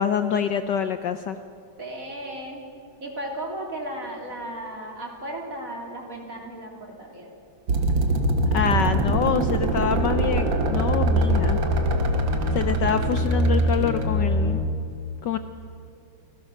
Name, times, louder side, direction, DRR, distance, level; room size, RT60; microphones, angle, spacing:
voice 1, 0.0-1.4 8.5-11.6 12.5-14.6 15.2-15.4, left 8 dB, 65° left, 9 dB, 1.2 m, -26 dB
voice 2, 1.8-2.6 3.0-7.3, right 1 dB, 40° right, 0 dB, 3.8 m, -35 dB
sound 1, 7.7-14.1, right 2 dB, 60° right, 2.2 m, -25 dB
sound 2, 8.7-14.6, equal, 15° left, 2.7 m, -25 dB
29.0 x 18.0 x 6.5 m, 2.5 s
omnidirectional pair, 2.3 m